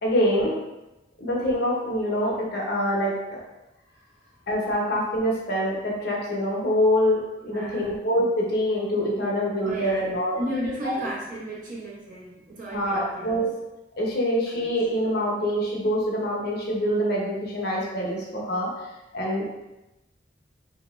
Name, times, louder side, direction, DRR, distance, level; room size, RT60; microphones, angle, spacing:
voice 1, 0.0-0.6 1.2-3.4 4.5-10.4 10.8-10.9 12.7-13.5 14.0-18.7 19.1-19.4, equal, 60° left, -2 dB, 0.9 m, -25 dB
voice 2, 7.4-7.9 9.6-10.0 10.3-13.3 14.6-14.7, equal, 50° right, -6 dB, 1.0 m, -34 dB
3.3 x 2.8 x 3.1 m, 0.98 s
head